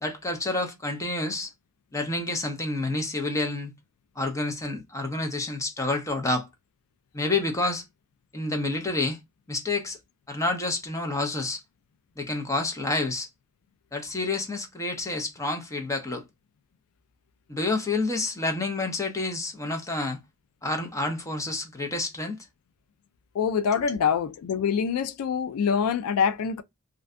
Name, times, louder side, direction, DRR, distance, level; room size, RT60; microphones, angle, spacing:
voice 1, 0.0-1.5 1.9-3.7 4.2-6.5 7.1-7.8 8.3-9.2 9.5-10.0 10.3-11.6 12.2-13.3 13.9-16.2 17.5-20.2 20.6-22.4 23.8-23.9, left 2 dB, 15° left, 0.5 m, -29 dB
voice 2, 23.3-26.6, left 6 dB, 70° left, 0.3 m, -25 dB
2.5 x 2.1 x 2.4 m
head